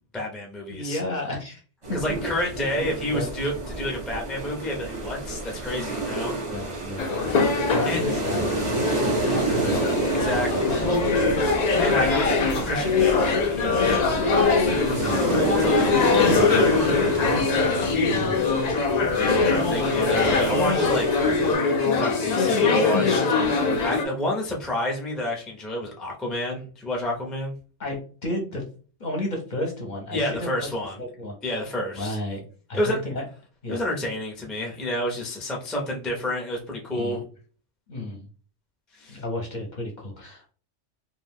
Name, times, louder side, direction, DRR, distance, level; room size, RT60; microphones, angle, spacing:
voice 1, 0.1-1.0 1.9-6.3 7.9-8.0 10.1-10.5 11.8-14.6 15.4-16.0 19.4-23.3 23.8-27.5 30.1-31.0 31.4-32.2 32.7-33.0 33.7-37.2 38.9-39.2, left 1 dB, ahead, -1 dB, 0.3 m, -29 dB
voice 2, 0.7-1.6 2.1-2.2 2.8-3.3 5.8-5.9 6.5-7.1 7.7-9.9 10.3-11.3 14.9-15.3 16.2-17.3 18.1-18.4 23.7-23.9 27.8-28.6 29.0-30.7 31.0-31.6 31.9-32.4 32.7-33.2 33.6-33.8 36.9-37.2 37.9-38.3 39.1-40.5, left 1 dB, 45° left, 0 dB, 0.7 m, -32 dB
sound 1, 1.8-21.5, right 2 dB, 30° right, 0.7 m, -30 dB
sound 2, 7.0-24.0, left 4 dB, 90° left, 0.3 m, -22 dB
2.5 x 2.2 x 3.3 m, 0.40 s
omnidirectional pair, 1.3 m